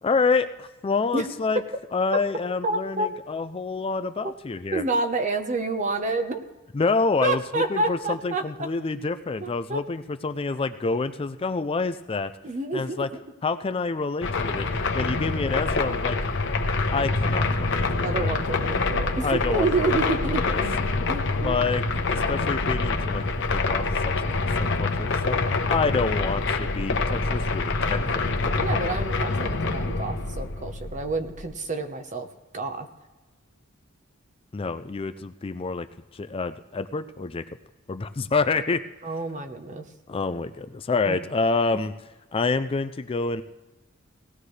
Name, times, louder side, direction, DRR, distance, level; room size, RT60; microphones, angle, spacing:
voice 1, 0.0-1.6 1.9-4.8 6.7-12.3 12.7-13.1 13.4-14.7 14.9-16.2 16.9-18.3 19.2-20.2 20.4-20.6 21.4-23.2 23.5-24.1 24.6-25.4 25.7-28.1 28.4-28.7 34.5-35.9 36.1-37.4 37.9-38.8 40.1-41.9 42.3-43.4, left 4 dB, 30° left, 11 dB, 0.4 m, -27 dB
voice 2, 2.6-3.1 4.2-4.3 4.7-6.4 7.2-8.7 9.4-9.8 12.4-13.2 18.0-21.7 28.6-32.3 32.5-32.9 39.0-39.8 41.1-41.2, right 2 dB, 40° right, 6 dB, 1.0 m, -29 dB
sound 1, 14.2-31.5, left 3 dB, 65° left, 1.0 m, -26 dB
18.0 x 14.5 x 3.3 m, 1.2 s
head